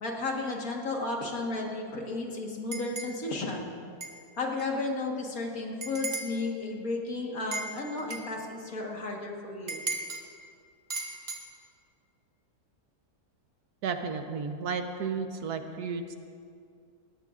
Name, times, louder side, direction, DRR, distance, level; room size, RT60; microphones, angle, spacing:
voice 1, 0.0-3.7 4.4-9.8, left 3 dB, 60° left, 0 dB, 2.0 m, -33 dB
sound 1, 2.7-3.2 4.0-4.2 4.6-4.7 5.8-6.4 7.5-8.3 9.7-10.2 10.9-11.4, right 3 dB, 35° right, 1.4 m, -36 dB
voice 2, 13.8-16.1, right 5 dB, 70° right, 6 dB, 1.4 m, -33 dB
20.0 x 17.5 x 2.5 m, 2.3 s
omnidirectional pair, 1.8 m